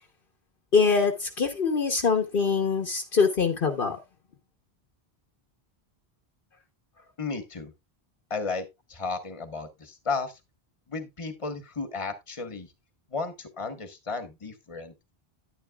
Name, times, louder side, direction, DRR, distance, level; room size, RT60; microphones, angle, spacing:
voice 1, 0.7-4.0, left 5 dB, 60° left, 1.2 m, -24 dB
voice 2, 7.2-7.7 8.3-10.4 10.9-12.7 13.1-15.1, left 4 dB, 30° left, 1.3 m, -34 dB
10.0 x 9.9 x 2.3 m
omnidirectional pair, 1.1 m